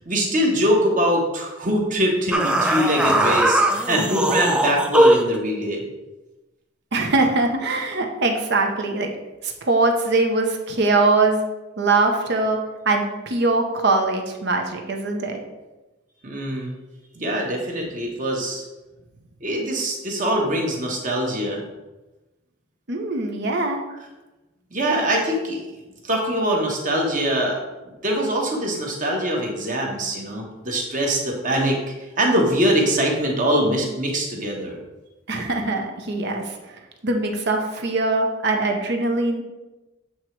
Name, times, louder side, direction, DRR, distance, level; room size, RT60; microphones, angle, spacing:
voice 1, 0.1-5.8 16.2-16.7 17.1-18.6 19.4-21.6 24.7-25.6 26.0-27.6 27.8-31.8 32.2-34.8, equal, 40° right, -1 dB, 1.2 m, -23 dB
sound 1, 2.3-5.4, right 1 dB, 5° right, 0.3 m, -19 dB
voice 2, 6.9-9.1 9.4-11.4 11.8-12.6 12.8-15.4 22.9-23.8 35.3-39.4, right 3 dB, 60° right, 3 dB, 0.8 m, -22 dB
7.8 x 3.0 x 4.5 m, 1.1 s
head